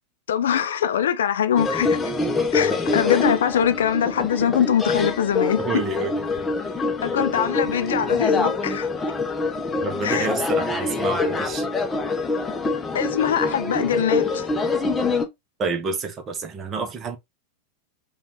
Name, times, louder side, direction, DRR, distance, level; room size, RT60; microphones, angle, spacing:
voice 1, 0.3-2.0 2.5-5.8 7.0-8.9 10.0-10.3 12.9-14.5, left 9 dB, 60° left, 0.5 m, -23 dB
sound 1, 1.6-15.2, left 3 dB, 15° left, 0.7 m, -25 dB
voice 2, 5.6-6.5 9.8-11.6 15.6-17.2, right 4 dB, 25° right, 0.8 m, -29 dB
5.2 x 2.4 x 3.0 m
figure-of-eight pair, 90°, 0 cm